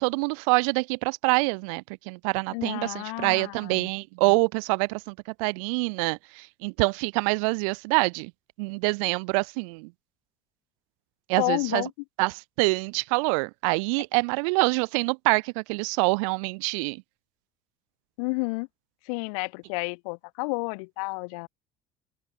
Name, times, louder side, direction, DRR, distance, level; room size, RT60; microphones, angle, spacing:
voice 1, 0.0-8.3 8.6-9.9 11.3-11.8 12.2-17.0, right 32 dB, 60° right, 0.7 m, -26 dB
voice 2, 2.5-3.9 11.4-11.9 18.2-18.7 19.1-21.5, left 31 dB, 65° left, 2.0 m, -31 dB
open air
figure-of-eight pair, 65°, 19 cm